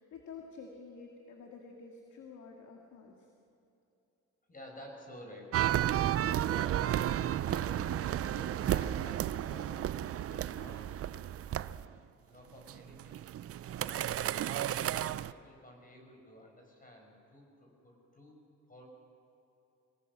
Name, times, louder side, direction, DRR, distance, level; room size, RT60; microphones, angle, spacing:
voice 1, 0.0-3.3, left 5 dB, 70° left, 1 dB, 2.2 m, -50 dB
voice 2, 4.5-11.1 11.4-18.4 18.7-18.8, left 1 dB, 30° left, 1 dB, 6.3 m, -52 dB
sound 1, 5.5-11.9 12.7-15.3, right 12 dB, 50° right, 0.5 m, -32 dB
24.0 x 18.5 x 6.3 m, 2.9 s
cardioid pair, 90°, 30 cm